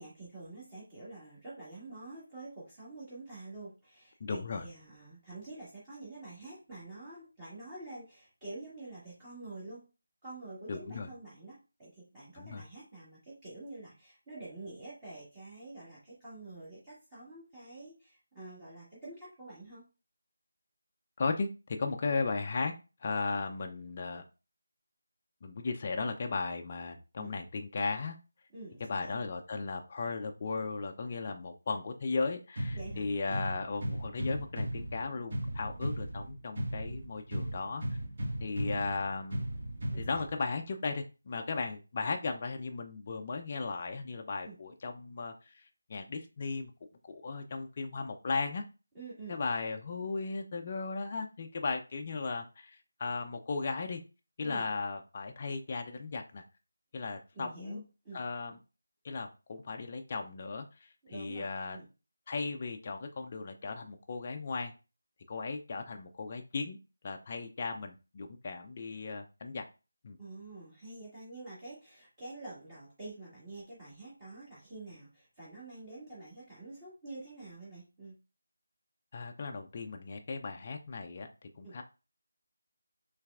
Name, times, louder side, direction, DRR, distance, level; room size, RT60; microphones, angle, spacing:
voice 1, 0.0-9.8 10.2-19.8 27.2-27.3 28.5-29.1 32.7-33.4 39.9-40.1 44.4-44.6 48.9-49.4 54.4-54.7 57.3-57.8 58.0-58.2 61.0-61.9 70.2-78.1 81.6-81.8, right 2 dB, 15° right, -9 dB, 1.8 m, -47 dB
voice 2, 4.2-4.6 10.7-11.1 12.3-12.6 21.2-21.5 21.8-22.7 23.0-24.2 25.4-28.2 28.9-37.8 38.4-39.4 40.0-46.7 47.0-48.6 49.3-54.0 54.4-56.4 56.9-57.8 58.1-58.6 59.0-61.8 62.3-64.7 65.3-66.8 67.0-69.6 70.0-70.2 79.1-81.3 81.6-81.8, left 4 dB, 35° left, 4 dB, 0.5 m, -36 dB
sound 1, 32.6-40.6, equal, 50° right, 1.1 m, -37 dB
5.6 x 3.2 x 2.4 m, 0.31 s
figure-of-eight pair, 165°, 0 cm